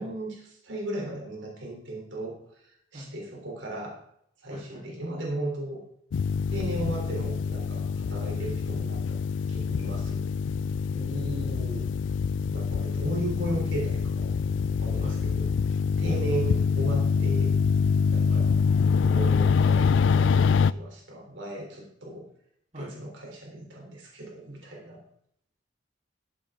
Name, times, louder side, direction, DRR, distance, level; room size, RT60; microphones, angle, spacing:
voice 1, 0.0-4.0 4.4-5.8 6.5-9.2 9.5-10.3 12.5-14.3 14.8-15.5 16.0-17.5 18.1-18.6 19.0-22.3 22.8-25.0, right 1 dB, 90° right, -1 dB, 3.6 m, -36 dB
voice 2, 4.5-4.8 8.4-8.5 10.9-11.9 15.0-15.2 16.1-16.4 18.3-18.4 22.7-22.9, equal, 40° right, -4 dB, 4.0 m, -39 dB
sound 1, 6.1-20.7, left 5 dB, 80° left, 0.3 m, -25 dB
13.5 x 8.4 x 3.8 m, 0.71 s
head